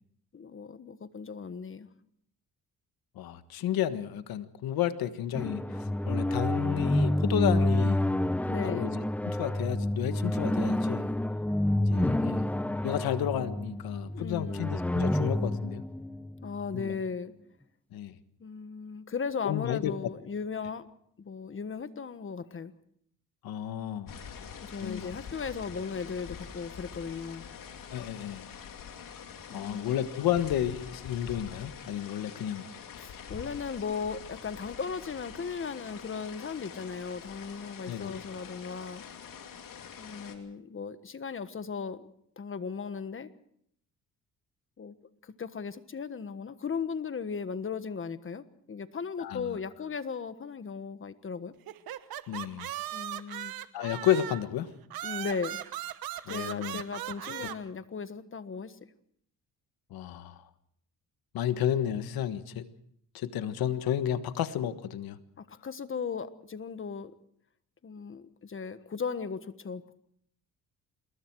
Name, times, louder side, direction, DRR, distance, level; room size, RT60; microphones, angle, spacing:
voice 1, 0.3-1.9 8.5-8.9 14.1-14.7 16.4-17.3 18.4-20.9 21.2-22.7 24.6-27.5 29.5-30.0 33.0-39.0 40.0-42.1 42.4-43.3 44.8-44.9 45.2-51.5 52.9-53.5 55.0-55.6 56.3-58.8 61.5-61.6 65.4-67.1 67.8-70.0, left 5 dB, 35° left, 12 dB, 1.4 m, -37 dB
voice 2, 3.1-8.0 8.6-11.1 11.9-12.5 12.8-15.8 16.7-17.0 17.9-18.2 19.4-19.9 23.4-24.2 24.8-25.1 27.9-28.5 29.5-32.7 37.9-38.2 49.2-49.6 52.3-52.7 53.7-54.7 56.3-56.8 57.4-57.5 59.9-60.5 61.3-62.7 63.1-65.2, left 10 dB, 85° left, 11 dB, 1.5 m, -32 dB
sound 1, 5.3-17.0, left 1 dB, 5° left, 0.8 m, -29 dB
sound 2, 24.1-40.3, left 7 dB, 65° left, 3.0 m, -45 dB
sound 3, 51.7-54.5 54.9-57.6, right 12 dB, 80° right, 1.2 m, -38 dB
27.0 x 21.0 x 4.7 m, 0.67 s
cardioid pair, 100°, 35 cm